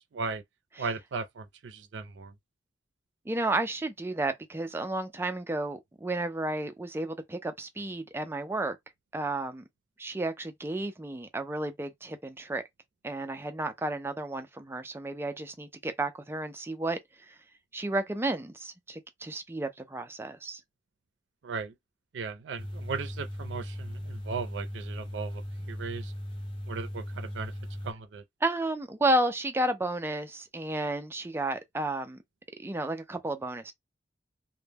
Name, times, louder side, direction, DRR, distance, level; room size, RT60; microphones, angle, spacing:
voice 1, 0.1-0.4 0.8-2.3 21.4-21.8 22.1-26.1 26.7-27.5 27.8-28.2, right 4 dB, 90° right, 0.4 m, -37 dB
voice 2, 3.3-8.8 9.1-9.6 10.0-12.6 13.0-17.0 17.7-20.6 28.4-32.2 32.6-33.7, right 2 dB, 15° right, 0.3 m, -32 dB
sound 1, 22.6-27.9, equal, 30° left, 0.9 m, -38 dB
2.1 x 2.1 x 3.3 m
head